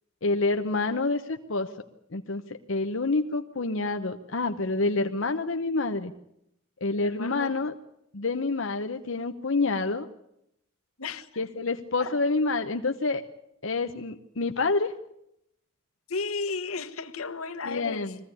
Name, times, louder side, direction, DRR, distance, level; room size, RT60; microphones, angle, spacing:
voice 1, 0.2-1.7 2.1-6.1 6.8-7.7 8.1-10.1 11.4-13.3 13.6-14.9 17.6-18.2, left 3 dB, 65° left, 0.9 m, -28 dB
voice 2, 6.9-7.6 11.0-11.4 12.0-12.2 16.1-18.1, left 4 dB, 90° left, 1.3 m, -34 dB
22.0 x 15.5 x 9.8 m
head